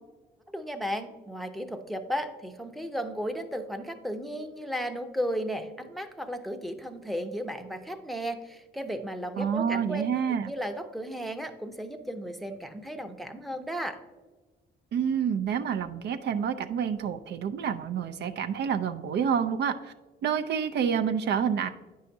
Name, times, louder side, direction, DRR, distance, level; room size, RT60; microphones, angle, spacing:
voice 1, 0.5-10.0 10.5-14.0, equal, ahead, 5 dB, 0.6 m, -34 dB
voice 2, 9.4-10.5 14.9-19.9 20.2-21.7, right 7 dB, 60° right, 7 dB, 0.4 m, -28 dB
9.2 x 5.5 x 2.7 m, 1.2 s
cardioid pair, 90°, 20 cm